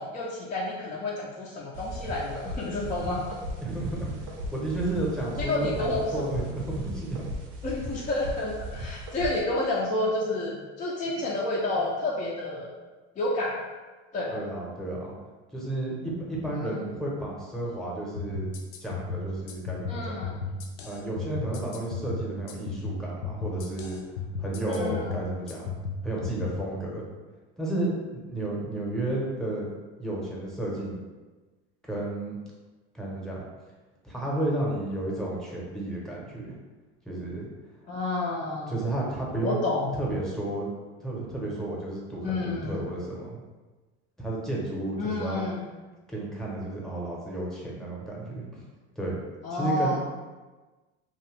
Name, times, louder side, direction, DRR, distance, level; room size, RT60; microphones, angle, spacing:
voice 1, 0.0-3.2 5.4-6.3 7.6-12.7 13.2-13.6 14.1-14.4 16.5-16.8 19.9-20.6 24.7-25.3 37.9-38.8 39.4-39.9 42.2-42.9 45.0-45.7 49.4-50.0, left 2 dB, 25° left, -5 dB, 0.4 m, -30 dB
sound 1, 1.7-9.4, equal, 75° right, 0.7 m, -37 dB
voice 2, 3.6-4.1 4.5-7.3 14.3-15.1 15.5-18.5 18.8-20.2 20.8-24.0 24.4-25.7 26.0-27.0 27.6-29.7 30.0-31.0 31.9-32.4 32.9-33.4 34.0-36.5 37.1-37.5 38.7-39.6 40.0-40.7 41.0-43.4 44.2-45.4 46.1-48.5 49.0-49.2 49.5-50.0, right 2 dB, ahead, -5 dB, 0.8 m, -32 dB
sound 2, 18.2-26.6, left 3 dB, 85° left, 0.6 m, -35 dB
2.7 x 2.2 x 3.1 m, 1.3 s
supercardioid pair, 105°, 34 cm